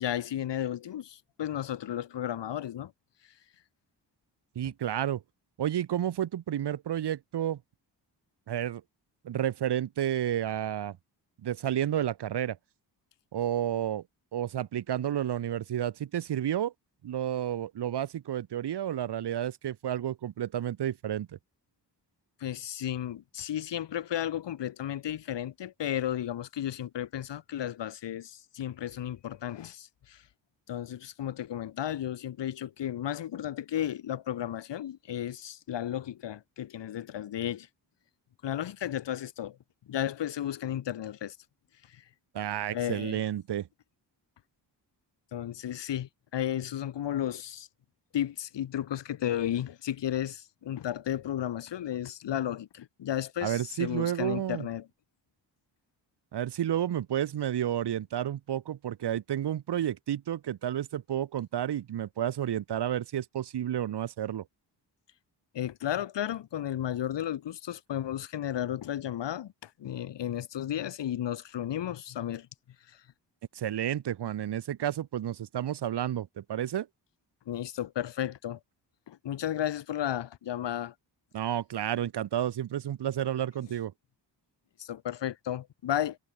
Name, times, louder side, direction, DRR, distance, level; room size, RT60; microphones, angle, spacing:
voice 1, 0.0-2.9 22.4-30.2 30.7-37.7 38.4-39.5 39.9-41.3 42.7-43.2 45.3-47.7 48.1-54.8 65.5-69.5 69.8-72.5 77.5-78.6 79.1-80.9 84.8-86.2, left 11 dB, 80° left, 1.4 m, -33 dB
voice 2, 4.5-5.2 5.6-7.6 8.5-8.8 9.2-11.0 11.4-12.6 13.3-14.0 14.3-16.7 17.0-21.3 42.3-43.7 53.4-54.7 56.3-64.4 73.5-76.9 81.3-83.9, right 10 dB, 70° right, 1.2 m, -31 dB
wide cardioid pair, 145°, 42 cm